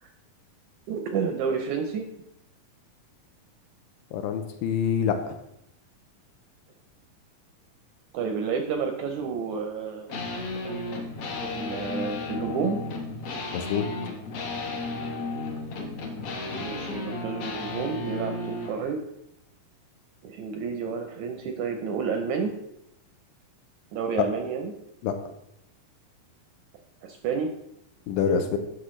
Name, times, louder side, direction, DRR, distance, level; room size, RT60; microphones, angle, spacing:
voice 1, 0.9-2.1 8.1-10.2 10.6-11.0 11.4-12.8 16.6-19.0 20.2-22.5 23.9-24.7 27.0-27.5, right 5 dB, 80° right, 5 dB, 1.7 m, -30 dB
voice 2, 4.1-5.4 13.5-13.8 25.0-25.1 28.1-28.6, left 7 dB, 80° left, 6 dB, 2.1 m, -26 dB
sound 1, 10.1-18.8, left 2 dB, 65° left, 1.5 m, -33 dB
10.5 x 6.2 x 3.1 m, 0.79 s
omnidirectional pair, 4.1 m